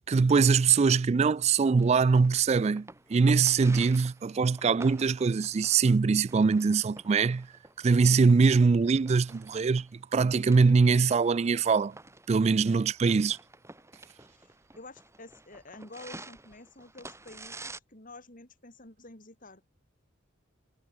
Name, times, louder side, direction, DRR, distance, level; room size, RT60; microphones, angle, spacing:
voice 1, 0.1-7.5 7.8-12.0 12.3-13.4, right 5 dB, 30° right, 0.3 m, -23 dB
sound 1, 1.8-17.8, right 2 dB, 15° right, 4.1 m, -50 dB
voice 2, 14.3-19.6, left 2 dB, 40° left, 4.5 m, -49 dB
head